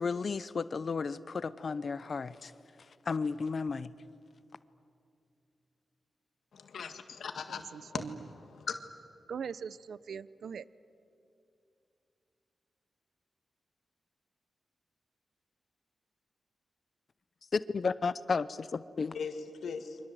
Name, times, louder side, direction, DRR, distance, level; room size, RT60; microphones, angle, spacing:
voice 1, 0.0-2.5 3.1-3.9 17.5-19.2, left 4 dB, 50° left, 15 dB, 0.7 m, -33 dB
voice 2, 6.5-8.0 8.6-8.7 19.1-19.3 19.6-20.0, left 6 dB, 80° left, 7 dB, 1.7 m, -38 dB
voice 3, 7.5-8.3 9.3-10.7, right 6 dB, 80° right, 18 dB, 0.6 m, -41 dB
29.0 x 24.5 x 7.8 m, 2.6 s
wide cardioid pair, 110°, 0 cm